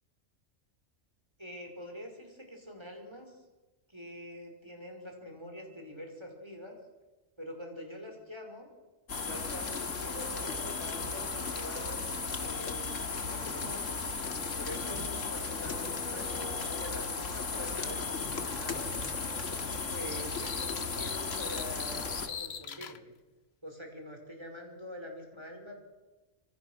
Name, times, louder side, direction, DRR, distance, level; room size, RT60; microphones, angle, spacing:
voice 1, 1.4-3.4 3.9-6.8 7.4-8.7 9.2-14.0 14.6-19.0 19.9-23.1 23.6-25.8, equal, 20° right, 3 dB, 5.4 m, -45 dB
sound 1, 9.1-22.3, left 4 dB, 75° left, 2.3 m, -35 dB
sound 2, 20.1-23.0, left 7 dB, 55° left, 1.2 m, -42 dB
27.5 x 24.5 x 6.4 m, 1.1 s
omnidirectional pair, 1.3 m